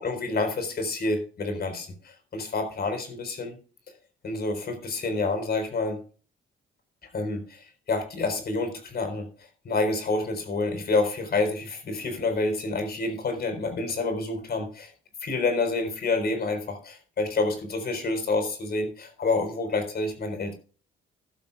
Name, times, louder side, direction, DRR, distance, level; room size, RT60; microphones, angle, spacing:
voice 1, 0.0-3.6 4.2-6.0 7.1-9.3 9.6-14.9 15.2-20.5, left 3 dB, 50° left, 7 dB, 4.1 m, -28 dB
15.0 x 12.0 x 2.3 m, 0.39 s
cardioid pair, 90°, 20 cm